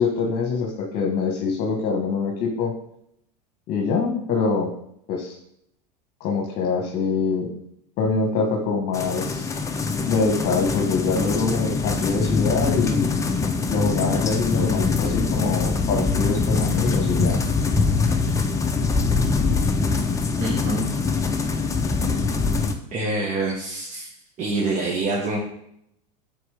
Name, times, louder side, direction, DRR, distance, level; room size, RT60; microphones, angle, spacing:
voice 1, 0.0-2.7 3.7-4.7 5.1-5.4 6.2-7.5 8.0-9.5 10.1-13.1 13.7-17.4, left 4 dB, 45° left, 1 dB, 1.2 m, -24 dB
sound 1, 8.9-22.7, left 4 dB, 15° left, 0.7 m, -23 dB
voice 2, 20.4-20.9 21.6-21.7 22.9-24.1 24.4-25.4, right 2 dB, 35° right, -1 dB, 1.2 m, -26 dB
7.7 x 3.9 x 3.4 m, 0.73 s
hypercardioid pair, 110°, 21 cm